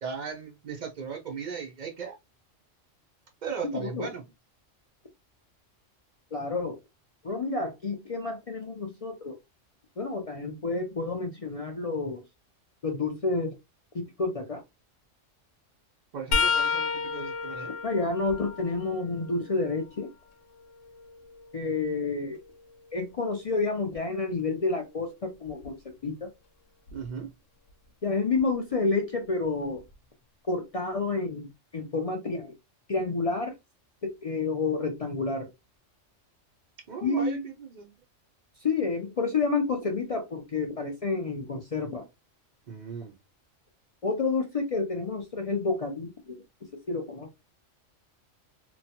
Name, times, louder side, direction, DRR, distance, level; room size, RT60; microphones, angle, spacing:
voice 1, 0.0-2.2 3.4-4.2 16.1-17.7 26.9-27.3 36.9-37.9 42.7-43.2, right 6 dB, 60° right, 0.5 m, -37 dB
voice 2, 6.3-6.8 7.2-9.4 10.0-12.2 12.8-13.6 13.9-14.6 17.8-20.1 21.5-22.4 22.9-25.8 26.0-26.3 28.0-29.8 30.5-31.5 31.7-32.5 32.9-33.5 34.0-35.5 37.0-37.5 38.6-42.0 44.0-46.4 46.9-47.4, left 3 dB, 65° left, 0.3 m, -29 dB
sound 1, 16.3-20.1 20.6-22.6 25.5-25.7 26.9-27.1 28.4-28.5, left 5 dB, 80° left, 1.0 m, -32 dB
3.0 x 2.1 x 2.8 m
omnidirectional pair, 1.3 m